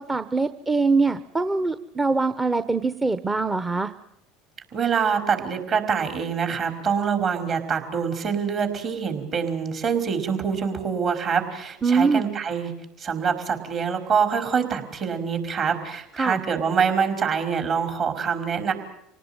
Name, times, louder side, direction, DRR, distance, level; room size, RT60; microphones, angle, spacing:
voice 1, 0.0-3.9 11.8-12.3 16.2-16.4, right 4 dB, 15° right, 11 dB, 1.1 m, -23 dB
voice 2, 4.7-12.7 13.0-18.7, right 6 dB, 40° right, 5 dB, 5.2 m, -25 dB
27.5 x 18.5 x 9.2 m, 0.76 s
hypercardioid pair, 80°, 0 cm